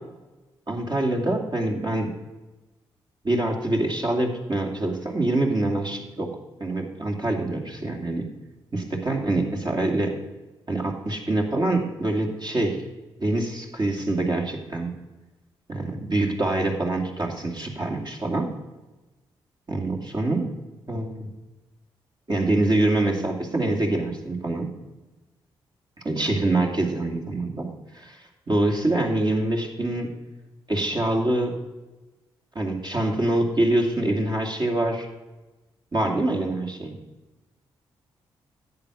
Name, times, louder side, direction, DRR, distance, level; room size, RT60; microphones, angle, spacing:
voice 1, 0.7-2.1 3.2-6.3 6.6-8.3 8.7-10.2 10.7-12.8 13.2-14.9 15.7-18.5 19.7-20.5 20.9-21.3 22.3-24.7 26.0-27.7 27.9-28.2 28.5-30.1 30.7-31.6 32.5-35.1 35.9-37.0, right 2 dB, 40° right, 1 dB, 2.6 m, -25 dB
10.5 x 8.6 x 6.3 m, 1.1 s
hypercardioid pair, 40°, 11 cm